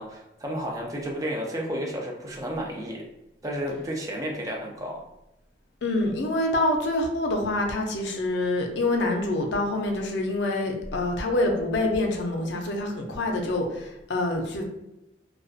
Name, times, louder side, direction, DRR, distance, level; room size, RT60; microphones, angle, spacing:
voice 1, 0.0-3.0 3.4-5.0, equal, 20° right, -1 dB, 0.4 m, -32 dB
voice 2, 5.8-14.6, left 2 dB, 85° left, 2 dB, 0.5 m, -26 dB
2.5 x 2.2 x 2.4 m, 0.92 s
head